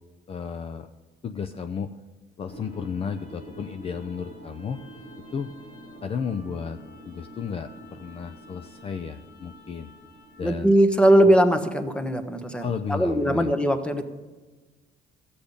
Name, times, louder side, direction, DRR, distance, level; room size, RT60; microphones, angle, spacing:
voice 1, 0.3-0.9 1.2-1.9 2.4-4.8 5.3-5.5 6.0-6.8 7.0-9.9 10.4-10.8 11.2-11.4 12.6-13.5, left 6 dB, 35° left, 7 dB, 0.5 m, -33 dB
sound 1, 2.5-10.7, equal, 60° left, 4.4 m, -46 dB
voice 2, 10.4-14.0, right 1 dB, 5° left, 7 dB, 1.1 m, -20 dB
14.0 x 8.5 x 5.2 m, 1.3 s
cardioid pair, 110°, 17 cm